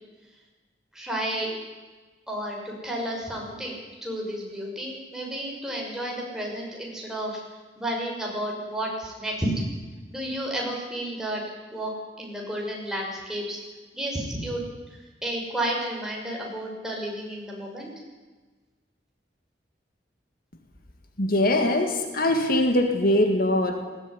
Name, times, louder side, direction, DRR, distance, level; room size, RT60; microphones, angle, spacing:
voice 1, 0.9-1.5 2.3-7.4 7.8-9.5 10.1-11.4 11.7-11.9 12.2-13.6 13.9-14.6 15.2-17.9, right 1 dB, 5° right, -2 dB, 6.0 m, -31 dB
voice 2, 21.2-23.9, left 1 dB, 55° left, 5 dB, 2.0 m, -22 dB
19.0 x 17.5 x 10.0 m, 1.3 s
head